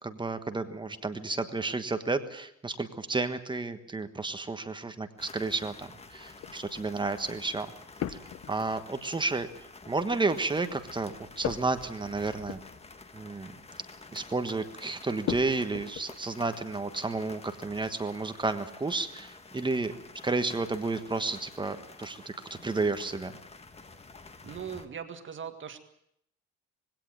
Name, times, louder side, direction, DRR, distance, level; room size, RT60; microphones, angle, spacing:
voice 1, 0.0-7.7 8.1-8.2 8.5-12.6 13.1-13.5 14.1-19.9 20.2-23.3, right 3 dB, 15° right, 9 dB, 1.3 m, -32 dB
sound 1, 5.2-24.9, left 3 dB, 20° left, 1.6 m, -50 dB
sound 2, 6.3-6.7 8.0-8.8 11.4-13.0 13.2-13.5 15.3-16.0, left 10 dB, 55° left, 1.2 m, -37 dB
voice 2, 24.4-25.8, right 7 dB, 40° right, 7 dB, 1.9 m, -39 dB
20.5 x 17.0 x 9.0 m, 0.73 s
cardioid pair, 145°, 29 cm